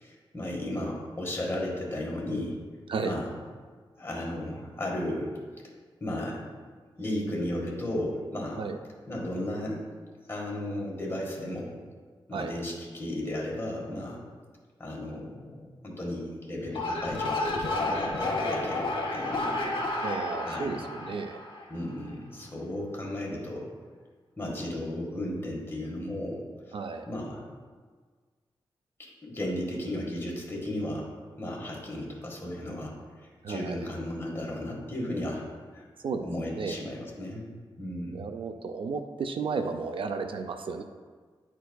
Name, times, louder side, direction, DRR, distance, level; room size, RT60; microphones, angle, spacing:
voice 1, 0.0-2.6 3.0-3.4 4.0-5.3 6.0-6.4 7.0-8.6 9.1-9.8 10.3-11.7 12.3-14.3 14.8-20.8 21.7-23.7 24.4-26.7 27.1-27.5 29.2-31.1 31.4-33.0 33.5-35.5 35.7-35.8 36.2-37.5 37.8-38.3, left 1 dB, 25° left, -3 dB, 1.6 m, -35 dB
sound 1, 16.6-21.9, left 2 dB, 65° left, 1.3 m, -31 dB
voice 2, 20.0-21.4 26.7-27.1 33.4-33.9 36.0-36.8 38.1-40.8, right 4 dB, 65° right, 6 dB, 0.4 m, -33 dB
10.0 x 4.5 x 2.3 m, 1.5 s
wide cardioid pair, 110°, 9 cm